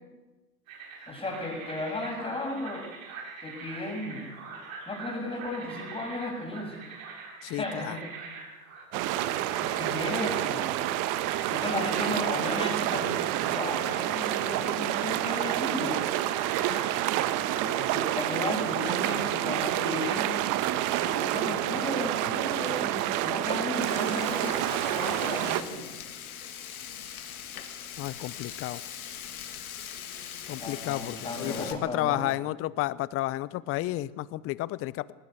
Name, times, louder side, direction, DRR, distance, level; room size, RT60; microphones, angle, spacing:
sound 1, 0.7-18.9, right 5 dB, 65° right, 7.2 m, -44 dB
voice 1, 1.1-2.9 3.4-4.3 4.9-6.8 7.4-8.1 9.6-10.7 11.5-13.2 13.5-16.0 17.5-20.3 21.0-26.0 30.4-32.4, left 2 dB, 10° left, 1 dB, 7.5 m, -35 dB
voice 2, 7.4-7.9 28.0-28.8 30.5-35.1, left 16 dB, 30° left, 20 dB, 0.8 m, -32 dB
sound 2, 8.9-25.6, right 13 dB, 45° right, 1.5 m, -28 dB
Frying (food), 23.8-31.7, left 9 dB, 70° left, 2.8 m, -41 dB
20.0 x 18.5 x 8.2 m, 1.2 s
hypercardioid pair, 95°, 44 cm